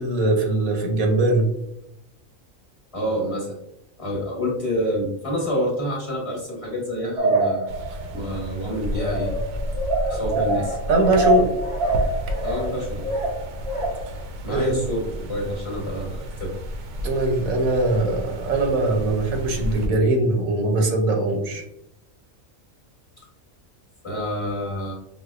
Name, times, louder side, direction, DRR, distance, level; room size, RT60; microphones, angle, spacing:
voice 1, 0.0-1.5 10.9-11.5 14.5-14.8 17.0-21.6, right 2 dB, 85° right, 3 dB, 1.2 m, -21 dB
voice 2, 2.9-3.6 4.0-7.7 8.1-9.3 10.1-10.8 12.4-13.1 14.4-16.5 24.0-24.9, equal, 30° left, -5 dB, 0.9 m, -27 dB
sound 1, 7.2-8.2 8.9-14.2, right 1 dB, 30° right, 0.7 m, -25 dB
sound 2, 7.7-19.9, equal, 70° right, 0.8 m, -32 dB
4.9 x 2.0 x 2.3 m, 0.80 s
omnidirectional pair, 1.4 m